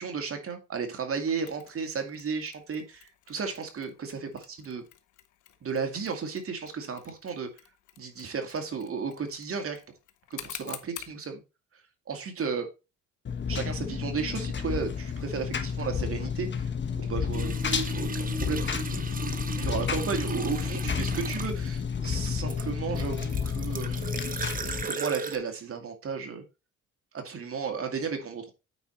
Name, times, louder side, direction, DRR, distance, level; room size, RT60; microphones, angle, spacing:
voice 1, 0.0-4.8 5.6-7.5 8.0-9.8 10.3-11.4 12.1-12.7 13.5-19.1 19.6-24.1 24.8-26.4 27.1-28.5, right 5 dB, 45° right, 2.1 m, -34 dB
Mechanisms, 1.5-11.2, left 12 dB, 80° left, 1.0 m, -49 dB
Engine, 13.3-24.9, left 6 dB, 40° left, 1.1 m, -31 dB
sound 1, 17.3-21.8 22.5-25.4, right 4 dB, 30° right, 1.0 m, -36 dB
9.2 x 4.6 x 4.4 m
cardioid pair, 90°, 30 cm